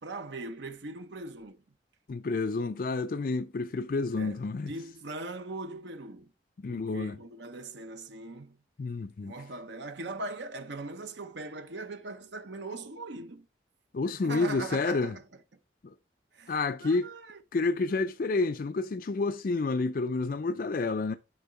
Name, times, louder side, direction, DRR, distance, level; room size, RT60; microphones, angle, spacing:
voice 1, 0.0-1.6 4.1-4.4 4.6-6.3 6.7-8.6 9.2-13.5 14.1-15.2 16.3-16.5 16.8-17.4, right 2 dB, 75° right, 0.8 m, -40 dB
voice 2, 2.1-4.7 6.6-7.2 8.8-9.3 13.9-15.2 15.8-15.9 16.5-17.1 17.5-21.2, left 3 dB, 50° left, 0.4 m, -29 dB
10.5 x 3.7 x 4.3 m
head